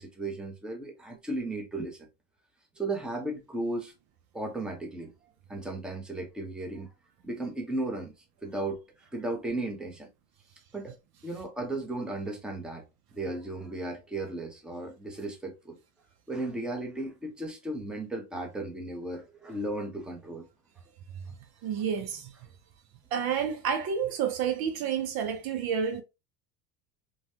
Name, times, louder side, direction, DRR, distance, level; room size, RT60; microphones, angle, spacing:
voice 1, 0.0-2.0 2.8-3.9 4.3-5.1 5.5-6.9 7.2-8.1 8.4-8.8 9.1-10.1 10.7-10.9 11.2-12.8 13.1-15.8 16.3-20.5, right 2 dB, ahead, 0.7 m, -35 dB
voice 2, 21.6-22.3 23.1-26.0, right 7 dB, 50° right, 0.6 m, -29 dB
3.1 x 2.2 x 2.7 m
hypercardioid pair, 90°, 48 cm